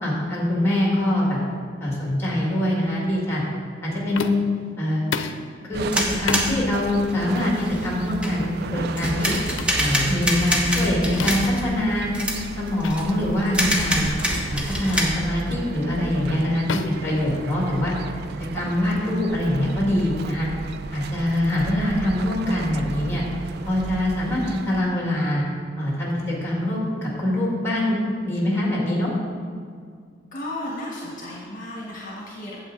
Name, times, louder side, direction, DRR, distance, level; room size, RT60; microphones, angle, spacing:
voice 1, 0.0-1.4 1.8-3.4 3.8-4.4 4.8-5.1 5.7-5.9 6.2-9.3 9.8-12.1 12.6-14.1 14.5-17.9 18.5-20.5 20.9-23.2 23.6-25.4 25.8-29.1, left 1 dB, 15° left, -3 dB, 2.1 m, -24 dB
sound 1, 4.1-4.6 5.1-5.5 6.3-6.5 7.3-7.5 8.4-8.6 9.6-9.8 11.2-11.6 12.8-13.0 13.4-13.6 14.3-14.6 15.5-15.7 16.7-17.9, left 4 dB, 85° left, 0.5 m, -31 dB
sound 2, 5.7-24.8, right 4 dB, 60° right, 0.3 m, -35 dB
sound 3, 5.9-8.5 9.0-11.7 12.1-12.4 12.7-13.1 13.5-15.0, equal, 5° right, 1.0 m, -25 dB
voice 2, 24.3-24.8 30.3-32.6, left 1 dB, 45° left, -3 dB, 1.4 m, -34 dB
8.8 x 7.3 x 3.8 m, 2.1 s
head